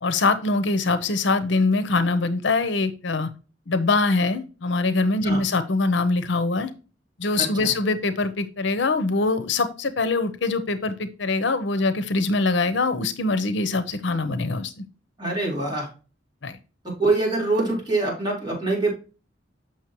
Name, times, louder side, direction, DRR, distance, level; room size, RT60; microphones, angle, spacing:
voice 1, 0.0-3.3 3.7-6.7 7.2-14.8 16.4-16.5, left 3 dB, 70° left, 12 dB, 0.7 m, -23 dB
voice 2, 7.4-7.7 15.2-15.9 16.8-18.9, right 2 dB, 25° right, -3 dB, 4.1 m, -24 dB
7.3 x 6.1 x 3.0 m, 0.34 s
head